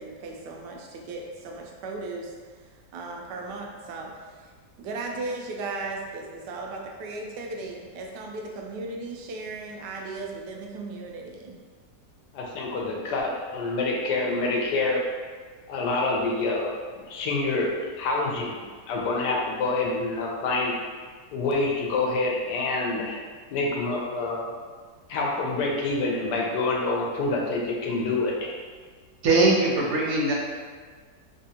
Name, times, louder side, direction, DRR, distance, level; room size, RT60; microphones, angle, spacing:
voice 1, 0.0-4.5 4.8-11.6, right 3 dB, 85° right, 0 dB, 1.2 m, -36 dB
voice 2, 12.3-15.0 15.7-17.7 18.0-20.7 21.3-23.2 23.5-24.5 25.1-28.5, left 3 dB, 90° left, -1 dB, 1.2 m, -27 dB
voice 3, 29.2-30.3, right 2 dB, 65° right, -4 dB, 1.1 m, -21 dB
3.4 x 2.7 x 2.7 m, 1.5 s
omnidirectional pair, 1.8 m